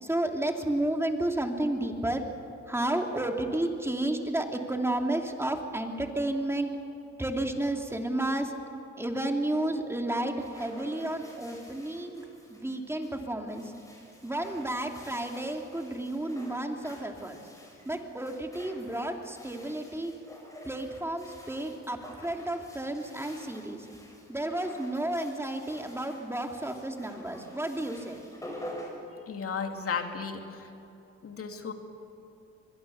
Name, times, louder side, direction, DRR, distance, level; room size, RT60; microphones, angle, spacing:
voice 1, 0.0-2.2 2.7-6.7 7.2-8.5 9.0-12.2 12.5-13.7 14.2-17.4 17.8-20.1 20.6-23.9 24.3-28.2, right 1 dB, 10° right, 3 dB, 2.7 m, -31 dB
sound 1, 10.2-29.8, equal, 10° left, 6.5 m, -49 dB
voice 2, 29.3-30.7 31.2-31.7, left 6 dB, 50° left, 5 dB, 2.7 m, -34 dB
25.0 x 21.5 x 7.1 m, 3.0 s
cardioid pair, 90°, 30 cm